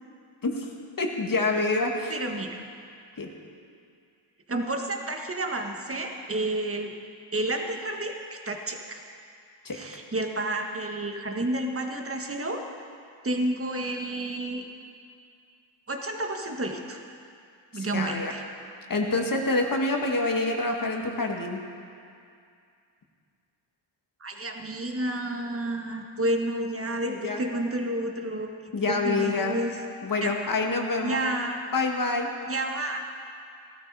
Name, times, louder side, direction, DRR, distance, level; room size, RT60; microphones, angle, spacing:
voice 1, 1.0-2.2 3.2-3.3 9.6-9.8 17.7-18.3 18.9-21.6 27.0-27.4 28.7-29.6 30.0-31.2 31.7-32.3, left 3 dB, 40° left, 1 dB, 2.0 m, -27 dB
voice 2, 2.1-2.6 4.5-6.9 7.3-9.0 9.7-12.6 13.2-14.6 15.9-17.0 17.7-18.4 24.2-29.8 30.2-30.3 31.0-31.6 32.4-33.0, right 1 dB, 25° right, 3 dB, 1.6 m, -30 dB
16.0 x 13.0 x 4.9 m, 2.4 s
cardioid pair, 75°, 48 cm